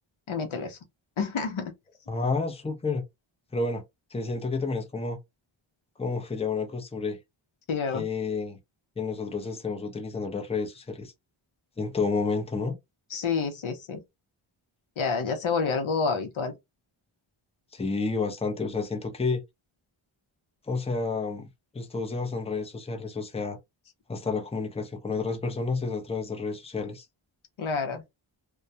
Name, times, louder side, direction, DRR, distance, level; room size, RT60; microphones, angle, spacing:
voice 1, 0.3-0.8 1.2-1.7 7.7-8.1 13.1-14.0 15.0-16.5 27.6-28.0, left 5 dB, 75° left, 0.7 m, -28 dB
voice 2, 2.1-3.0 3.5-3.8 4.1-5.2 6.0-7.2 7.9-8.6 9.0-11.1 11.8-12.7 17.7-19.4 20.7-21.5 21.7-23.6 24.1-27.0, left 4 dB, 15° left, 0.6 m, -30 dB
2.2 x 2.2 x 2.7 m
wide cardioid pair, 65°, 50 cm